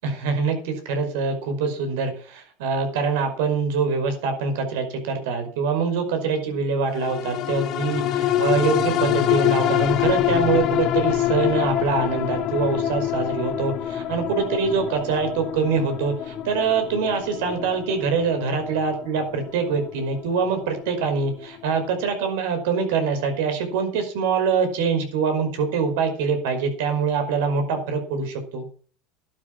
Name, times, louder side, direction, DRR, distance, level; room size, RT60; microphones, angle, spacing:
voice 1, 0.0-13.7 14.1-28.7, right 5 dB, 80° right, 7 dB, 5.2 m, -24 dB
sound 1, 7.0-21.7 22.1-22.2, left 12 dB, 50° left, 1.6 m, -26 dB
12.0 x 10.5 x 6.1 m, 0.41 s
supercardioid pair, 125°, 0 cm